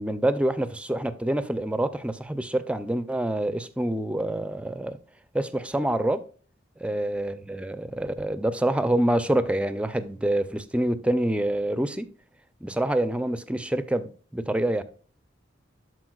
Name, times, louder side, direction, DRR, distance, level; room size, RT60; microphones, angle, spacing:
voice 1, 0.0-5.0 5.3-6.2 6.8-12.1 12.6-14.8, right 1 dB, 5° right, 0.4 m, -26 dB
12.5 x 4.6 x 2.3 m
head